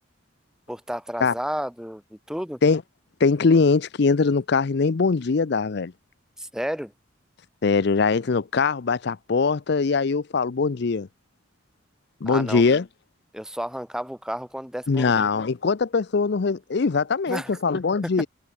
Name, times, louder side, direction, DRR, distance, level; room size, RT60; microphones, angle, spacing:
voice 1, 0.7-2.6 6.4-6.9 12.3-12.6 13.3-15.3 17.3-17.5, equal, 5° right, 2.7 m, -32 dB
voice 2, 3.2-5.9 7.6-11.1 12.2-12.8 14.9-18.3, left 4 dB, 60° left, 0.5 m, -22 dB
head